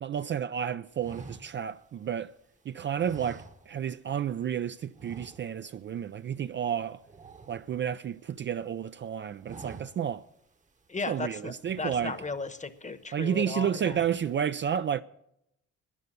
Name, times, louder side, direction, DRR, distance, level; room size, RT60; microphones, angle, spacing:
voice 1, 0.0-2.3 2.7-7.0 7.5-10.2 11.1-12.2 13.1-15.0, right 8 dB, 40° right, 0.4 m, -31 dB
sound 1, 1.0-2.4 3.0-4.1 4.3-4.5 4.9-5.8 6.1-6.3 6.6-8.3 8.7-9.0 9.3-10.3 10.7-10.8 11.6-12.7 13.2-13.5 13.8-14.4, right 4 dB, 25° right, 1.0 m, -48 dB
voice 2, 10.9-14.0, left 4 dB, 25° left, 1.1 m, -36 dB
13.0 x 9.6 x 6.6 m
cardioid pair, 90°, 30 cm